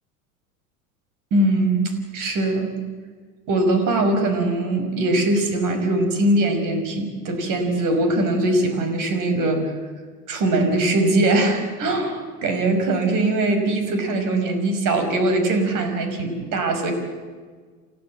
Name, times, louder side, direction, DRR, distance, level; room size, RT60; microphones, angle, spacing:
voice 1, 1.3-2.7 3.5-9.7 10.3-16.9, right 2 dB, 45° right, 6 dB, 5.8 m, -21 dB
28.5 x 15.5 x 7.7 m, 1.5 s
hypercardioid pair, 95°, 45 cm